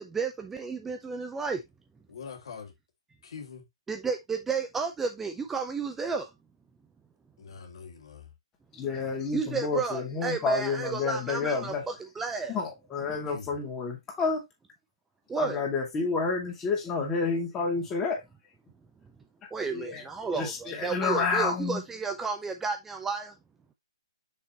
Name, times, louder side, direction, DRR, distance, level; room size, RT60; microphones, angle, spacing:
voice 1, 0.0-1.6 3.9-6.3 9.3-12.6 15.3-15.6 19.5-23.3, right 5 dB, 10° right, 0.5 m, -32 dB
voice 2, 2.1-2.7 3.2-3.7 7.4-8.3 13.3-13.6, left 6 dB, 60° left, 2.3 m, -43 dB
voice 3, 8.7-11.8 12.5-14.4 15.3-18.2 19.7-20.0 20.3-21.8, left 4 dB, 15° left, 2.4 m, -29 dB
6.4 x 5.6 x 3.0 m
hypercardioid pair, 155°, 3 cm